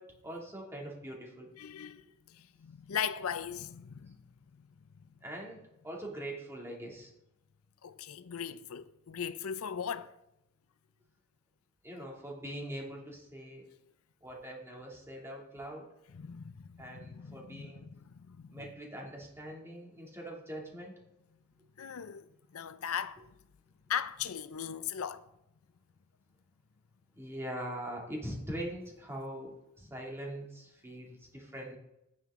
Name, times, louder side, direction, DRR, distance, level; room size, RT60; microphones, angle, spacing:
voice 1, 0.0-1.5 5.2-7.1 11.8-13.7 14.2-15.9 16.8-17.8 18.5-20.9 27.1-31.8, right 1 dB, 10° right, 2.5 m, -42 dB
voice 2, 1.6-4.2 7.8-10.1 16.1-18.6 21.8-22.3 22.5-23.2 23.9-25.2, left 8 dB, 85° left, 0.5 m, -38 dB
10.5 x 9.2 x 3.7 m
head